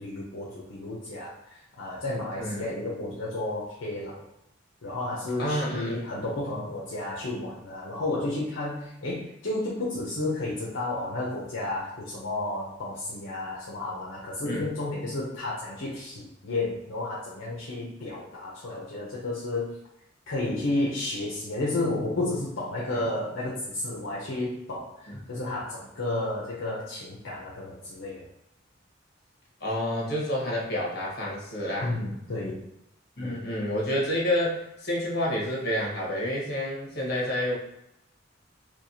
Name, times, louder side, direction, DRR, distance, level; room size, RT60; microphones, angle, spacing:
voice 1, 0.0-4.2 4.8-19.8 20.3-28.2 31.8-32.7, left 2 dB, 70° left, -5 dB, 0.7 m, -32 dB
voice 2, 5.4-6.0 14.4-14.7 25.1-25.2 29.6-32.0 33.2-37.6, left 1 dB, 55° left, -3 dB, 1.2 m, -29 dB
4.4 x 2.3 x 2.8 m, 0.80 s
head